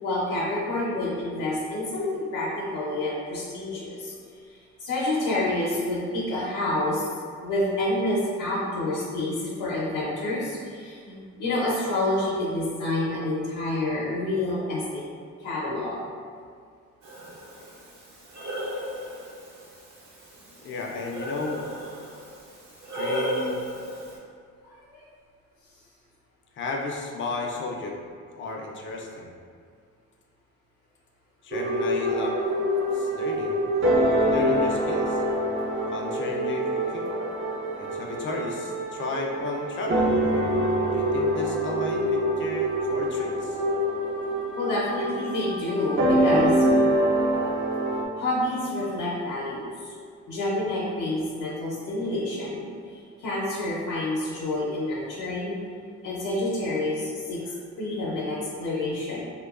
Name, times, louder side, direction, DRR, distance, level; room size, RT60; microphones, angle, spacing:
voice 1, 0.0-4.2 4.8-7.0 7.4-15.0 15.4-16.0 24.6-25.0 44.6-46.7 48.1-49.9 50.3-52.7 53.2-55.6 56.0-59.2, left 1 dB, 85° left, -7 dB, 0.6 m, -28 dB
Breathing, 17.0-24.2, equal, 65° right, 0.9 m, -35 dB
voice 2, 20.6-21.6 22.9-23.6 26.5-28.0 28.4-29.3 31.4-32.4 32.9-35.2 35.9-37.1 37.8-40.1 40.9-43.6, left 3 dB, 40° left, 0 dB, 0.4 m, -33 dB
sound 1, 31.5-48.1, right 1 dB, 40° right, 0.4 m, -25 dB
2.7 x 2.2 x 2.3 m, 2.1 s
cardioid pair, 90°, 30 cm